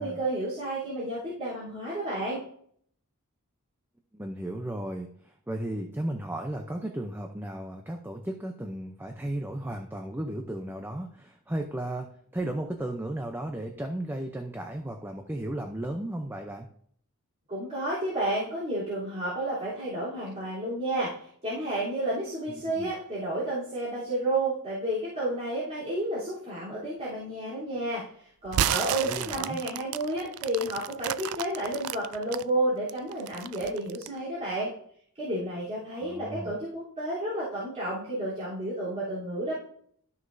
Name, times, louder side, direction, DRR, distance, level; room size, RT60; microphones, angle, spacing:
voice 1, 0.0-2.4 17.5-21.1 21.4-34.7 35.2-39.6, right 1 dB, 30° right, -11 dB, 3.4 m, -31 dB
voice 2, 4.1-16.7 22.5-22.9 29.0-29.6 35.9-36.6, right 1 dB, 10° right, 4 dB, 0.6 m, -35 dB
sound 1, 28.5-32.4 32.9-34.2, right 11 dB, 75° right, 0.3 m, -31 dB
13.0 x 6.3 x 2.7 m, 0.62 s
head